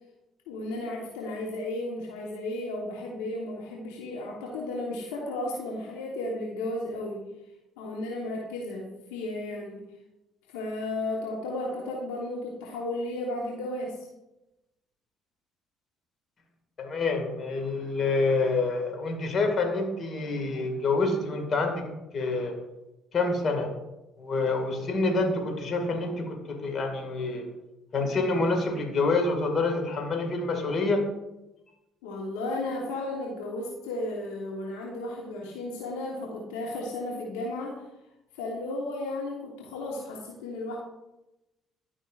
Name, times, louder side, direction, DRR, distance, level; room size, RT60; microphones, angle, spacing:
voice 1, 0.5-7.3 7.8-9.9 10.5-14.1 32.0-37.8 38.3-40.8, left 2 dB, 85° left, -1 dB, 1.1 m, -34 dB
voice 2, 16.8-21.9 22.1-22.6 23.1-23.7 24.2-27.5 27.9-31.1, left 3 dB, 50° left, 3 dB, 1.8 m, -27 dB
12.0 x 5.5 x 2.4 m, 0.97 s
hypercardioid pair, 60°, 0 cm